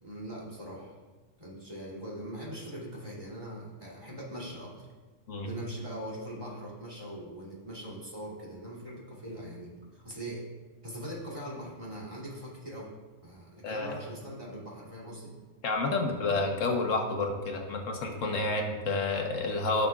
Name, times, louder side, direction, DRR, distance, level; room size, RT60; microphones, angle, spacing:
voice 1, 0.0-1.0 1.4-4.9 5.4-10.4 10.8-12.9 13.2-15.3, equal, 25° right, -5 dB, 2.7 m, -41 dB
voice 2, 15.6-19.9, left 3 dB, 80° left, 2 dB, 1.4 m, -29 dB
14.5 x 6.6 x 2.4 m, 1.3 s
omnidirectional pair, 1.3 m